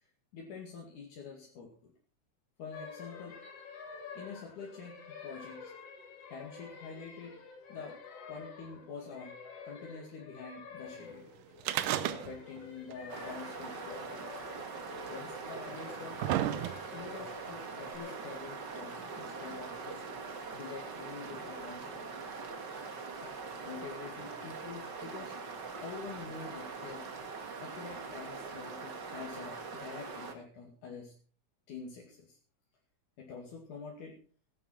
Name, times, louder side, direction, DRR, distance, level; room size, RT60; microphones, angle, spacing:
voice 1, 0.3-1.9 2.6-3.4 4.1-5.7 6.3-7.4 7.7-9.4 9.6-11.3 11.6-11.7 12.1-14.0 15.1-16.7 16.9-20.0 20.5-22.3 23.2-25.3 25.8-27.1 27.6-31.1 31.7-32.4 33.2-34.2, left 5 dB, 75° left, -1 dB, 3.8 m, -47 dB
sound 1, 2.7-18.4, left 5 dB, 55° left, 3.1 m, -49 dB
sound 2, 11.6-12.6 12.9-13.0 14.0-14.1 15.0-15.1 15.7-17.1 17.9-18.0, right 13 dB, 90° right, 2.4 m, -32 dB
sound 3, 13.1-30.3, right 4 dB, 40° right, 2.1 m, -43 dB
16.5 x 11.0 x 4.3 m, 0.39 s
omnidirectional pair, 3.6 m